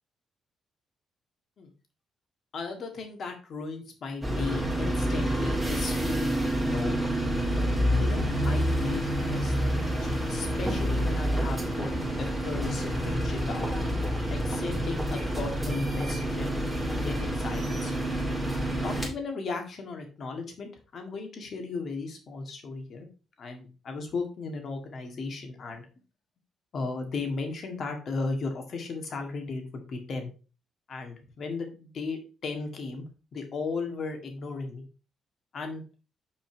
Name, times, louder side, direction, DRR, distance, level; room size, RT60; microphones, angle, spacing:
voice 1, 2.5-7.0 8.0-9.0 9.3-13.7 14.3-16.5 17.0-17.9 18.8-23.1 23.4-25.8 26.7-30.3 30.9-33.0 33.3-34.9 35.5-35.8, left 4 dB, 55° left, 4 dB, 2.0 m, -36 dB
sound 1, 4.2-19.1, equal, 5° right, 2.4 m, -28 dB
6.1 x 4.4 x 4.5 m, 0.34 s
cardioid pair, 90°, 0 cm